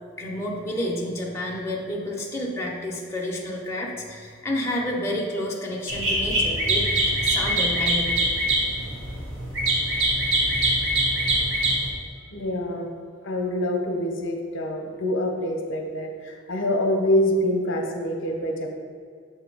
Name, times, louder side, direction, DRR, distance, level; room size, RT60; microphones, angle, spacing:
voice 1, 0.2-6.9 7.2-8.2, left 1 dB, 10° left, -4 dB, 0.7 m, -30 dB
sound 1, 5.9-11.9, right 1 dB, 65° right, 1.3 m, -23 dB
voice 2, 12.3-12.9 13.2-18.8, left 1 dB, 60° left, 2 dB, 0.7 m, -25 dB
7.4 x 2.8 x 5.3 m, 2.1 s
head